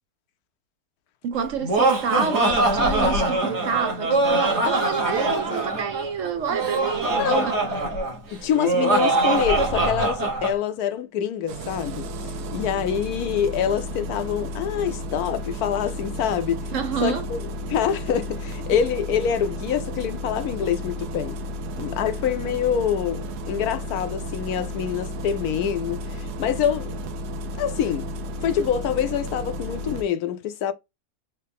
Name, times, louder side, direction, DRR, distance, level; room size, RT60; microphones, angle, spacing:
voice 1, 1.2-7.4 16.7-17.2, right 6 dB, 65° right, 0.8 m, -28 dB
Laughter, 1.4-10.5, right 2 dB, 50° right, 1.5 m, -23 dB
voice 2, 7.1-7.4 8.3-16.7 17.0-21.4 21.8-27.0 27.6-28.1 28.4-30.7, left 9 dB, 75° left, 1.1 m, -26 dB
Engine starting, 11.5-30.0, equal, 85° right, 1.2 m, -33 dB
4.5 x 2.9 x 3.4 m
omnidirectional pair, 1.6 m